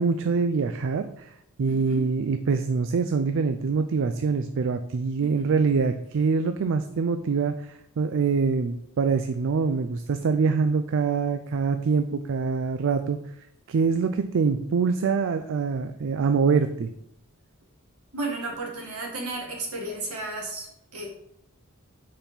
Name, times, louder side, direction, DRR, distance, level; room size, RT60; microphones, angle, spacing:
voice 1, 0.0-13.2 13.7-16.9, right 5 dB, 60° right, 9 dB, 0.4 m, -24 dB
voice 2, 1.7-2.1 5.2-5.5 18.1-21.1, right 2 dB, 75° right, -1 dB, 2.0 m, -34 dB
5.3 x 4.4 x 5.6 m, 0.76 s
head